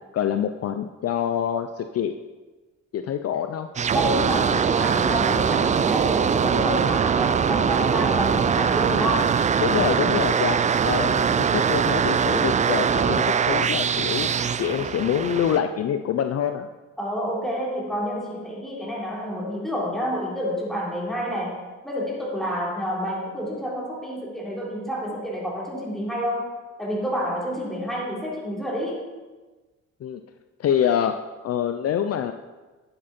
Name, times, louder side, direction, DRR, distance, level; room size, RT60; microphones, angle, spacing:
voice 1, 0.1-2.1 2.9-3.7 9.6-16.7 30.0-30.2 30.6-31.2 31.4-32.3, left 9 dB, 55° left, 8 dB, 0.6 m, -26 dB
sound 1, 3.8-15.6, right 7 dB, 25° right, 0.3 m, -22 dB
voice 2, 3.9-9.3 17.0-26.5 26.8-29.0, equal, ahead, -4 dB, 3.6 m, -29 dB
11.0 x 7.8 x 4.3 m, 1.2 s
cardioid pair, 90°, 30 cm